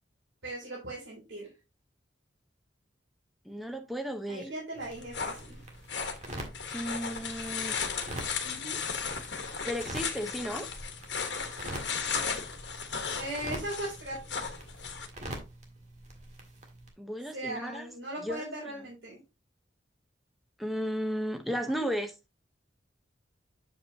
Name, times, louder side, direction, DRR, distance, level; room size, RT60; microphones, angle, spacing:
voice 1, 0.4-1.5 4.2-5.6 8.4-8.8 13.1-14.5 17.3-19.2 21.5-21.8, right 1 dB, 85° right, 3.3 m, -39 dB
voice 2, 3.4-4.5 6.7-7.8 9.6-10.7 17.0-17.9 18.2-18.4 20.6-22.1, equal, ahead, 0.9 m, -34 dB
sound 1, 4.7-16.9, right 1 dB, 40° right, 1.8 m, -45 dB
sound 2, 4.8-15.1, left 6 dB, 65° left, 1.3 m, -36 dB
7.7 x 7.0 x 2.8 m
head